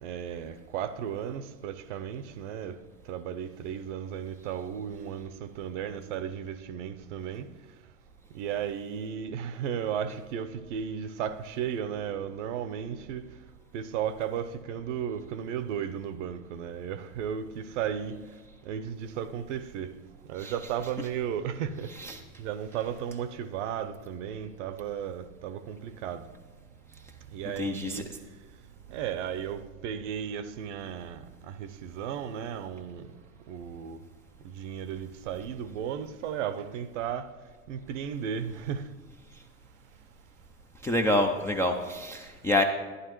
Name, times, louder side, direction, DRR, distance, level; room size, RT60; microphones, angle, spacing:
voice 1, 0.0-2.8 3.1-7.5 8.3-13.2 13.7-18.2 18.6-20.0 20.3-21.9 22.4-26.3 27.3-28.1 28.9-33.1 33.5-34.0 34.4-37.3 37.7-38.9, right 8 dB, 60° right, 0.7 m, -34 dB
voice 2, 20.4-21.1 21.9-22.2 27.5-28.0 40.8-42.6, left 1 dB, 5° left, 0.3 m, -28 dB
11.5 x 11.0 x 3.1 m
hypercardioid pair, 95°, 41 cm